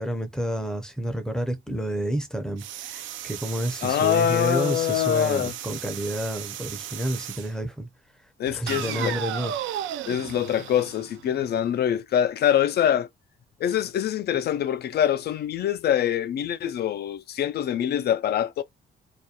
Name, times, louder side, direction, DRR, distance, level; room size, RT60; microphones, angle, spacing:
voice 1, 0.0-7.9 8.5-9.5, equal, 5° left, 0.6 m, -30 dB
sound 1, 2.6-7.5 8.7-11.6, right 11 dB, 75° right, 0.4 m, -35 dB
voice 2, 3.8-5.5 8.4-9.2 10.1-13.1 13.6-18.6, left 10 dB, 55° left, 0.4 m, -24 dB
2.4 x 2.2 x 2.7 m
cardioid pair, 90°, 20 cm